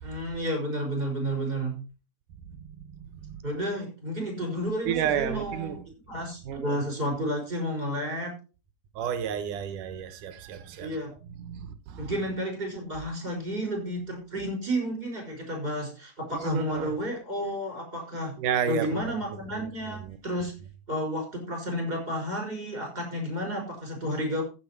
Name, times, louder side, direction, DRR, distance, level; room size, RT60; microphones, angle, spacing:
voice 1, 0.0-1.8 3.4-5.8 6.1-8.3 10.8-11.1 12.0-18.3 18.7-20.5 20.9-24.4, equal, 15° right, 5.5 m, -31 dB
voice 2, 2.6-3.4 4.9-5.8 6.4-6.8 9.0-11.0 11.2-12.1 16.4-17.0 18.4-19.1 19.5-20.2, right 9 dB, 75° right, 2.5 m, -32 dB
15.0 x 6.3 x 4.4 m
omnidirectional pair, 3.7 m